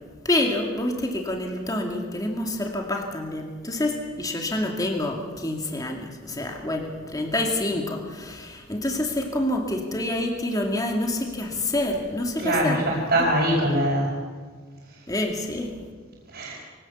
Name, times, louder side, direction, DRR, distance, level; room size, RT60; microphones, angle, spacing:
voice 1, 0.2-12.9 13.2-13.3 15.1-15.7, left 1 dB, 20° left, 2 dB, 2.3 m, -27 dB
voice 2, 12.4-14.1 16.3-16.5, right 1 dB, 55° right, -6 dB, 5.2 m, -22 dB
24.0 x 17.5 x 7.2 m, 1.5 s
head